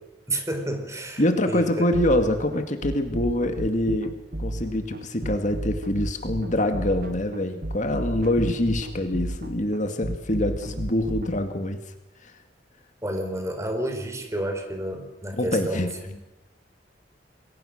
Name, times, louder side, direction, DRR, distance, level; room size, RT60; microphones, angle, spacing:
voice 1, 0.3-1.7 13.0-16.2, right 1 dB, 15° right, 5 dB, 4.1 m, -30 dB
voice 2, 1.2-11.8 12.2-12.3 15.3-16.0, left 1 dB, 45° left, 6 dB, 2.1 m, -25 dB
sound 1, 1.9-11.3, right 1 dB, 60° right, 1.7 m, -32 dB
28.5 x 22.0 x 6.6 m, 1.0 s
head